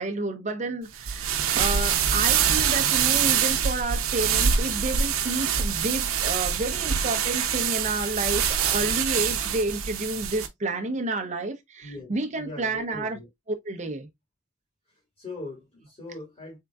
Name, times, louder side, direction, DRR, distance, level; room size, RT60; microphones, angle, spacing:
voice 1, 0.0-13.2 13.6-14.1, right 2 dB, 35° right, 0.7 m, -30 dB
sound 1, 1.0-10.5, right 8 dB, 90° right, 0.6 m, -25 dB
voice 2, 11.8-13.3 15.2-16.6, left 2 dB, 30° left, 2.5 m, -40 dB
3.7 x 3.7 x 2.2 m
head